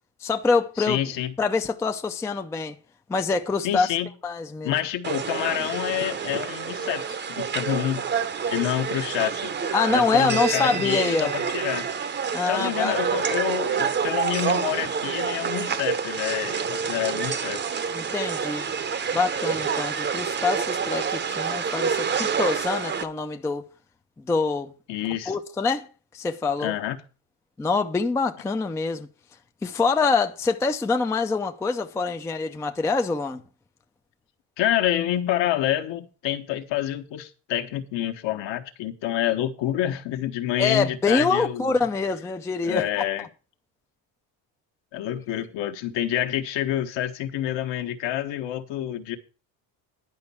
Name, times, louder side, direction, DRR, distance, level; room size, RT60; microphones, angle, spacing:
voice 1, 0.2-1.0 1.4-2.8 3.1-4.0 4.2-4.8 9.7-11.4 12.3-13.0 17.9-18.7 19.1-23.7 24.2-24.7 25.3-26.7 27.6-29.1 29.6-33.4 40.6-43.1 45.4-45.5, left 4 dB, 5° left, 0.4 m, -25 dB
voice 2, 0.8-1.3 3.6-4.1 4.6-8.0 8.5-9.5 9.9-11.9 12.5-17.6 24.9-25.3 26.6-27.0 34.6-41.8 42.6-43.3 44.9-49.2, left 12 dB, 60° left, 1.3 m, -28 dB
sound 1, 5.0-23.0, right 6 dB, 25° right, 0.7 m, -28 dB
10.5 x 5.3 x 7.0 m
cardioid pair, 150°, 49 cm